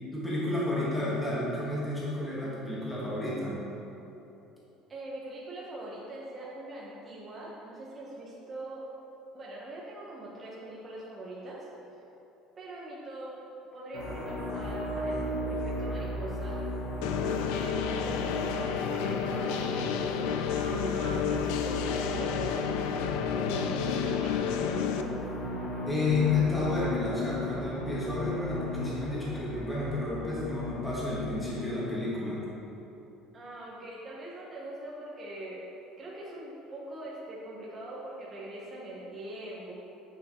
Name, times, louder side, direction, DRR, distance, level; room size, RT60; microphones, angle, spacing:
voice 1, 0.1-3.6 25.8-32.4, left 2 dB, 5° left, -8 dB, 1.3 m, -31 dB
voice 2, 4.9-8.9 9.3-12.0 12.5-13.3 13.7-15.2 15.5-16.6 17.2-22.6 23.4-25.1 33.3-35.6 36.0-39.7, right 1 dB, 20° right, -6 dB, 0.9 m, -42 dB
sound 1, 13.9-32.0, left 1 dB, 60° left, 1.2 m, -35 dB
sound 2, 17.0-25.0, left 8 dB, 90° left, 0.4 m, -31 dB
8.5 x 6.3 x 3.0 m, 2.9 s
cardioid pair, 175°, 0 cm